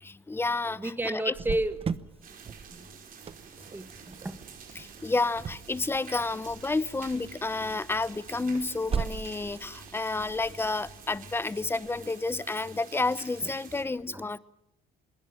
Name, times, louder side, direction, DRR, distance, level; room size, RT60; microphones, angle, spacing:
voice 1, 0.0-1.3 4.7-14.4, left 3 dB, 15° left, 0.9 m, -30 dB
voice 2, 0.8-2.0 2.7-2.9 3.7-4.4 13.4-13.5 14.1-14.2, right 1 dB, 10° right, 1.8 m, -32 dB
Cricket, 1.3-12.8, right 6 dB, 35° right, 1.0 m, -40 dB
sound 1, 2.2-13.8, right 7 dB, 55° right, 5.1 m, -49 dB
26.5 x 21.0 x 8.9 m
cardioid pair, 110°, 17 cm